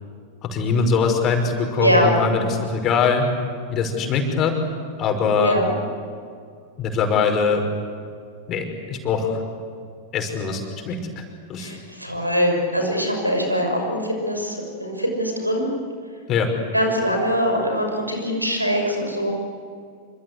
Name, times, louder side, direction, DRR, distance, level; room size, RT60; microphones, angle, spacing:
voice 1, 0.5-3.3 3.7-4.5 5.0-5.6 6.8-7.7 8.5-9.4 10.1-10.6 10.9-11.2 11.5-11.7 16.3-16.5, left 5 dB, 30° left, 4 dB, 5.4 m, -22 dB
voice 2, 1.8-2.2 5.4-5.7 11.6-15.6 16.7-19.3, equal, 90° right, 3 dB, 6.3 m, -22 dB
27.0 x 26.0 x 8.2 m, 2.2 s
figure-of-eight pair, 90°, 0 cm